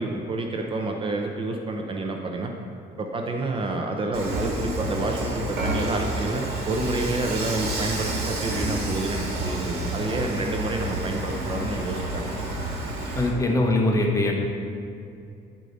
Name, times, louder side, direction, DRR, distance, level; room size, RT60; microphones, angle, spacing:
voice 1, 0.0-2.5 3.0-12.3, right 2 dB, 30° right, 3 dB, 0.7 m, -29 dB
Dishes pots and pans / Frying (food), 4.1-13.3, right 1 dB, 70° right, 1.8 m, -30 dB
voice 2, 13.1-14.3, left 2 dB, 20° left, 0 dB, 1.0 m, -22 dB
9.0 x 4.9 x 4.0 m, 2.5 s
cardioid pair, 110°, 17 cm